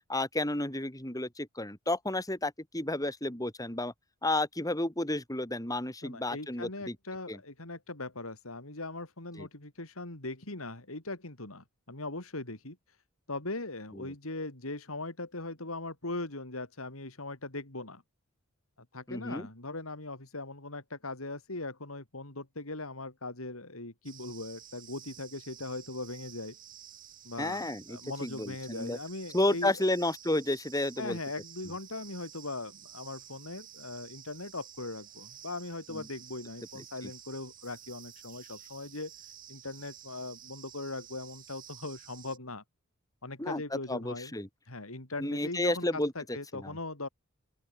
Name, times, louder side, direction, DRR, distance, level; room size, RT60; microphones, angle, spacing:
voice 1, 0.1-3.9 4.2-6.9 7.3-7.4 9.4-9.5 14.0-14.1 19.1-19.5 27.4-29.0 29.3-31.2 35.9-36.0 43.4-43.6 43.9-44.5 45.2-46.1 46.5-46.7, left 1 dB, 15° left, 4.4 m, -31 dB
voice 2, 6.0-12.8 13.3-18.0 18.9-26.6 27.2-29.9 31.0-39.1 39.5-42.6 43.2-44.3 44.7-47.1, left 2 dB, 85° left, 4.3 m, -40 dB
sound 1, 24.0-42.4, right 10 dB, 40° right, 7.9 m, -51 dB
open air
head